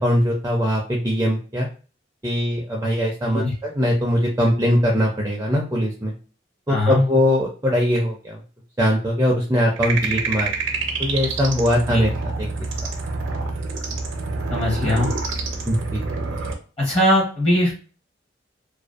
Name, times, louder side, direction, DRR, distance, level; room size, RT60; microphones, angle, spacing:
voice 1, 0.0-1.7 2.2-6.1 6.7-8.4 8.8-10.5 11.0-12.5 15.7-16.0, equal, 15° right, -1 dB, 0.4 m, -21 dB
voice 2, 6.7-7.0 11.9-12.0 14.5-15.1 16.8-17.7, left 1 dB, 30° left, -4 dB, 0.8 m, -20 dB
sound 1, 9.8-16.5, right 3 dB, 75° right, 0.5 m, -27 dB
2.5 x 2.2 x 2.4 m, 0.38 s
head